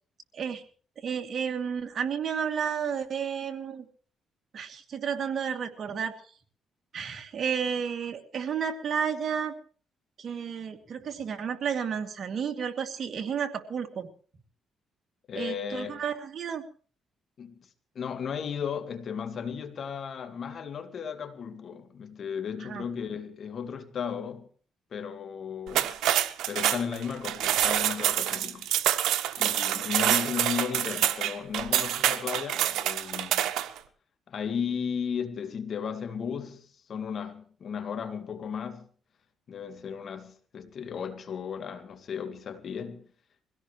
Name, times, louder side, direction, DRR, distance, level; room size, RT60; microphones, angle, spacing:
voice 1, 1.0-3.9 4.5-6.1 6.9-9.5 10.2-14.1 15.4-16.6 22.6-22.8, right 7 dB, 55° right, 2.5 m, -32 dB
voice 2, 15.3-16.0 17.4-17.7 17.9-24.5 24.9-25.9 26.5-29.0 29.3-33.5 34.3-38.9 39.5-43.0, left 7 dB, 55° left, 2.3 m, -35 dB
sound 1, 25.7-33.8, right 12 dB, 85° right, 1.2 m, -26 dB
23.5 x 17.0 x 3.2 m
cardioid pair, 90°, 0 cm